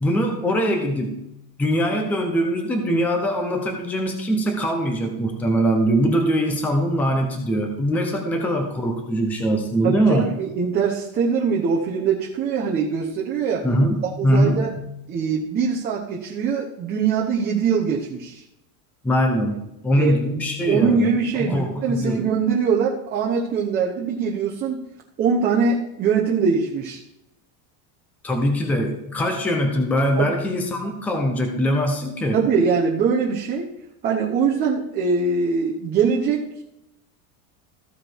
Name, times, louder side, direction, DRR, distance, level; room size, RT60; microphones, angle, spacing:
voice 1, 0.0-1.3 1.6-10.4 13.6-14.9 19.0-19.6 19.8-22.3 28.2-32.4, equal, 5° left, 3 dB, 0.6 m, -22 dB
voice 2, 9.8-13.7 14.2-14.7 15.1-18.4 20.0-20.2 20.7-24.8 25.2-27.0 30.2-30.3 32.3-33.6 34.0-36.5, right 5 dB, 20° right, -2 dB, 0.9 m, -22 dB
14.5 x 5.0 x 4.5 m, 0.87 s
cardioid pair, 180°, 42 cm